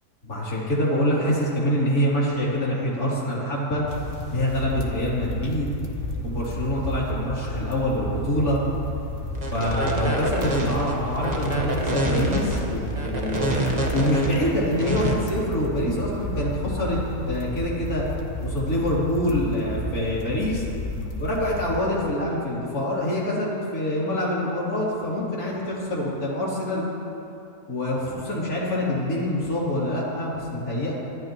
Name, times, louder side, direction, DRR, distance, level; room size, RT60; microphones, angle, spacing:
voice 1, 0.2-3.9 4.3-5.7 6.2-8.6 9.5-13.5 13.9-17.0 17.3-18.0 18.4-20.7 21.2-26.9 27.7-30.9, equal, 60° left, -6 dB, 3.7 m, -25 dB
sound 1, 3.9-22.2, left 1 dB, 35° left, 1.3 m, -32 dB
sound 2, 6.2-17.4, right 3 dB, 75° right, 2.5 m, -44 dB
sound 3, 9.4-15.1, right 1 dB, 25° right, 1.4 m, -27 dB
24.0 x 13.0 x 3.0 m, 2.7 s
omnidirectional pair, 1.8 m